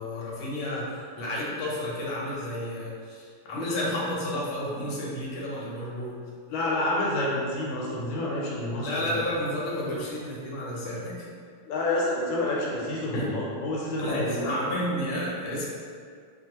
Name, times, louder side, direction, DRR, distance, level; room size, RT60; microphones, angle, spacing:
voice 1, 0.0-6.2 8.8-11.1 13.1-13.3 14.0-15.7, left 1 dB, 70° left, -5 dB, 1.3 m, -31 dB
voice 2, 6.5-9.2 9.8-9.9 11.7-14.5, left 1 dB, 90° left, -4 dB, 1.4 m, -29 dB
3.2 x 2.3 x 2.8 m, 2.1 s
omnidirectional pair, 2.2 m